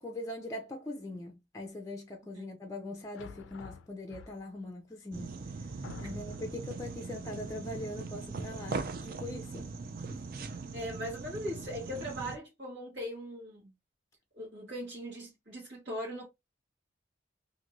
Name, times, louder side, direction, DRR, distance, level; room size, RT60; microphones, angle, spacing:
voice 1, 0.0-5.4 6.0-9.7 10.1-10.2, left 1 dB, 15° left, 0.4 m, -41 dB
sound 1, 3.1-4.7 5.3-5.4 5.8-6.7, left 6 dB, 80° left, 0.3 m, -48 dB
sound 2, 5.1-12.4, right 4 dB, 50° right, 0.4 m, -40 dB
voice 2, 10.7-13.7 14.4-16.3, equal, 70° right, 1.3 m, -39 dB
2.5 x 2.5 x 2.9 m
head